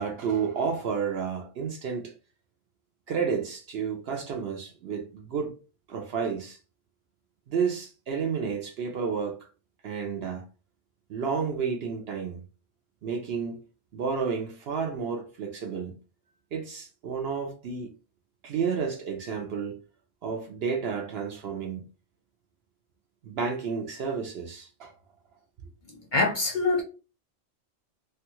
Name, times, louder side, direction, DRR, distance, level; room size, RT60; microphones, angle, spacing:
voice 1, 0.0-2.1 3.1-5.6 5.9-6.6 7.5-9.5 9.8-10.4 11.1-12.4 13.0-13.6 13.9-15.9 16.5-17.9 18.4-19.8 20.2-21.8 23.2-24.9, right 6 dB, 65° right, 0.7 m, -31 dB
voice 2, 26.1-26.8, left 3 dB, 50° left, 0.7 m, -24 dB
3.3 x 2.3 x 2.9 m
omnidirectional pair, 1.3 m